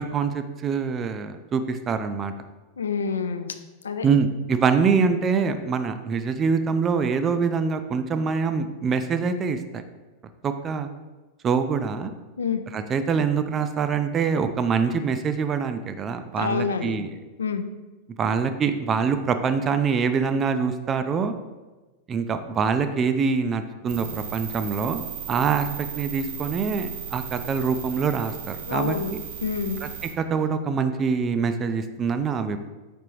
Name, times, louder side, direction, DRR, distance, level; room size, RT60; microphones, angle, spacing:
voice 1, 0.0-2.3 4.0-9.8 10.4-10.9 11.4-12.1 12.7-17.1 18.2-21.3 22.1-29.2 29.8-29.9 30.2-32.7, right 5 dB, 25° right, 9 dB, 0.3 m, -24 dB
voice 2, 2.8-3.5 3.8-4.1 12.4-12.6 16.4-17.0 17.4-17.6 28.7-29.1 29.4-29.8, left 5 dB, 70° left, 8 dB, 0.3 m, -27 dB
sound 1, 23.9-30.1, right 8 dB, 55° right, 0.8 m, -36 dB
4.9 x 3.5 x 3.0 m, 1.2 s
figure-of-eight pair, 90°, 0 cm